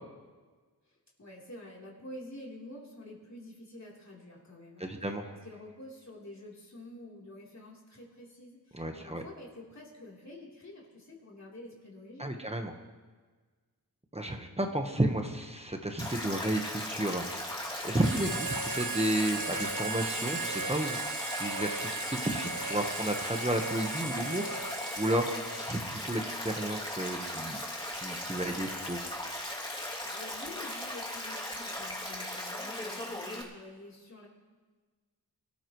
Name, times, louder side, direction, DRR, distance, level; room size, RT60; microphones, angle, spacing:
voice 1, 0.9-5.0 5.3-12.4 30.0-34.3, left 1 dB, 45° left, -4 dB, 3.8 m, -48 dB
voice 2, 4.8-5.4 8.7-9.2 12.2-12.7 14.1-17.2 17.8-25.3 25.6-27.6 27.9-29.0, right 1 dB, 15° right, 4 dB, 1.3 m, -32 dB
Stream, 16.0-33.4, left 1 dB, 10° left, 2.8 m, -38 dB
Harmonica, 18.0-26.0, right 3 dB, 50° right, 1.4 m, -37 dB
23.0 x 14.0 x 3.2 m, 1.4 s
wide cardioid pair, 75°, 39 cm